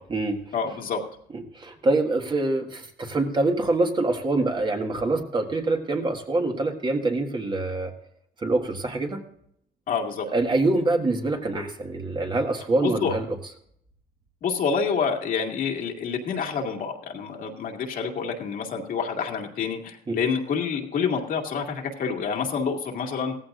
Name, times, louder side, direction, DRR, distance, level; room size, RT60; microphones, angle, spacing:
voice 1, 0.5-1.0 9.9-10.3 12.8-13.2 14.4-23.4, left 6 dB, 55° left, 2 dB, 2.1 m, -27 dB
voice 2, 1.3-7.9 8.4-9.2 10.3-13.4 20.1-20.2, right 2 dB, 30° right, 3 dB, 1.7 m, -25 dB
17.0 x 15.0 x 2.6 m, 0.69 s
cardioid pair, 110°, 17 cm